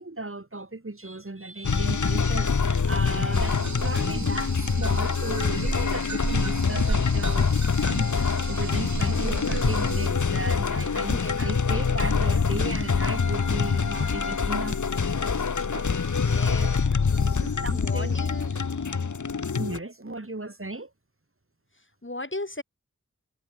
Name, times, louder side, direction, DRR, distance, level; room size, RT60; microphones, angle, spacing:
voice 1, 0.0-7.5 7.8-16.0 16.5-16.6 17.1-18.2 19.6-20.9, right 2 dB, 45° right, 5.7 m, -36 dB
sound 1, 1.6-19.8, left 5 dB, 85° left, 1.1 m, -25 dB
sound 2, 3.3-10.1, right 3 dB, 75° right, 2.6 m, -33 dB
voice 2, 11.0-11.4 16.3-16.7 17.1-17.5 17.7-18.5 22.0-22.6, left 2 dB, 40° left, 7.3 m, -36 dB
wide cardioid pair, 50°, 29 cm